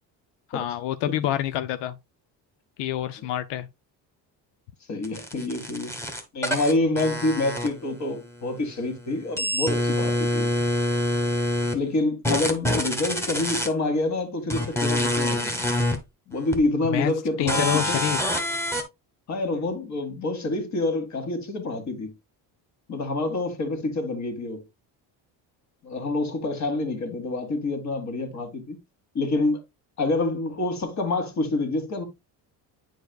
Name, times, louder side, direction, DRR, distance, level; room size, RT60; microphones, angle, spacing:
voice 1, 0.5-2.0 2.8-3.7 16.9-17.1 17.4-18.2, left 11 dB, 90° left, 0.6 m, -27 dB
voice 2, 4.9-5.9 6.3-10.5 11.7-15.6 16.3-18.1 19.3-22.1 22.9-24.6 25.8-28.8 29.1-29.6 30.0-32.0, left 2 dB, 40° left, 1.9 m, -27 dB
sound 1, 5.0-8.1 8.4-11.8 12.2-13.7 14.5-16.0 16.5-16.6 17.5-18.8, left 1 dB, 5° left, 1.2 m, -26 dB
9.2 x 4.7 x 2.3 m
cardioid pair, 130°, 41 cm